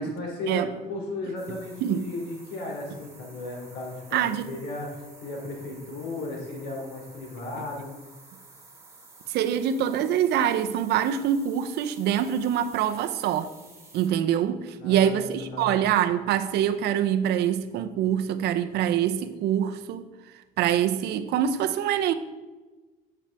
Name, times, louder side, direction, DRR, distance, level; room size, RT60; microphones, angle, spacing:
voice 1, 0.0-8.0 14.8-15.9, left 2 dB, 90° left, 3.0 m, -35 dB
sound 1, 1.4-14.1, right 3 dB, 15° right, 2.2 m, -51 dB
voice 2, 4.1-4.5 9.3-13.5 13.9-20.1 20.6-22.1, right 10 dB, 80° right, 0.7 m, -25 dB
10.0 x 8.0 x 3.5 m
cardioid pair, 110°, 17 cm